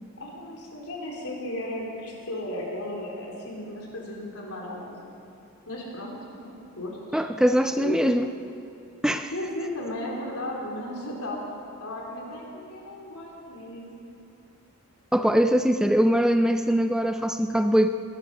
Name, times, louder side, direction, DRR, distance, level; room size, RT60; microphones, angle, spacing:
voice 1, 0.2-5.0 5.7-7.2 7.8-8.1 9.3-11.4 11.8-14.2, left 1 dB, 85° left, -2 dB, 3.6 m, -35 dB
voice 2, 7.1-8.3 9.0-9.3 15.1-17.9, equal, 5° right, 8 dB, 0.3 m, -22 dB
20.0 x 11.5 x 5.4 m, 2.8 s
head